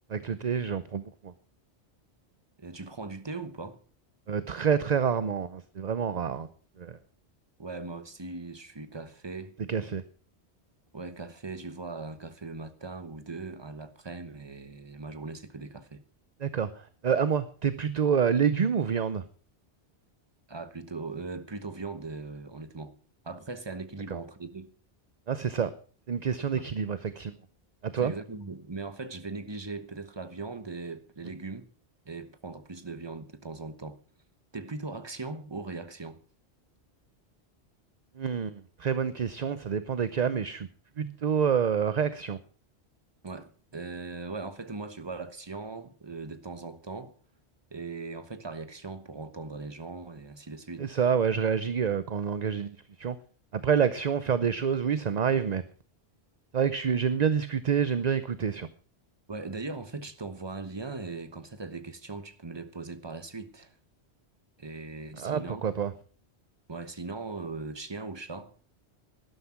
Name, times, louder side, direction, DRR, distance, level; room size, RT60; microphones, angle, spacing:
voice 1, 0.1-1.3 4.3-6.5 6.8-7.0 9.7-10.0 16.4-16.7 17.0-19.2 24.1-24.2 25.3-25.7 26.1-27.3 27.8-28.1 38.2-40.7 41.0-42.4 50.8-53.2 53.5-55.6 56.5-58.7 65.2-65.9, right 7 dB, 45° right, 0.7 m, -27 dB
voice 2, 2.6-3.8 7.6-9.5 10.9-16.0 20.5-22.9 23.2-24.7 26.5-26.7 27.9-31.7 32.0-34.0 34.5-36.2 43.2-47.1 47.7-51.0 59.3-63.7 64.6-65.7 66.7-68.5, right 3 dB, 25° right, 1.2 m, -39 dB
12.0 x 11.5 x 5.9 m
omnidirectional pair, 1.1 m